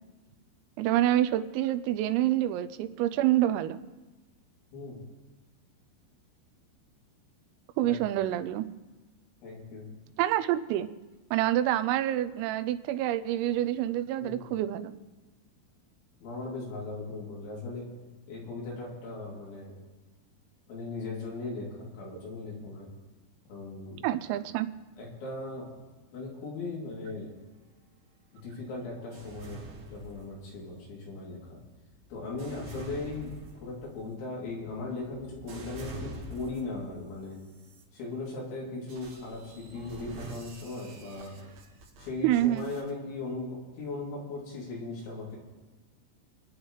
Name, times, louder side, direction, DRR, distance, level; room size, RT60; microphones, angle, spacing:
voice 1, 0.8-3.8 7.8-8.7 10.2-10.9 11.3-14.9 24.0-24.7 42.2-42.7, right 13 dB, 90° right, 11 dB, 3.3 m, -27 dB
voice 2, 4.7-5.0 7.9-8.0 9.4-9.9 14.2-14.5 16.2-17.9 18.3-19.8 20.7-22.9 23.5-24.1 25.0-25.7 26.1-27.3 28.3-31.6 32.1-37.4 37.9-41.4 42.0-45.4, left 3 dB, 65° left, -4 dB, 5.1 m, -38 dB
sound 1, 29.1-30.7 31.4-36.9 37.5-37.8 38.9-42.9, right 2 dB, 60° right, 2.8 m, -46 dB
29.0 x 9.8 x 3.2 m, 1.2 s
omnidirectional pair, 5.9 m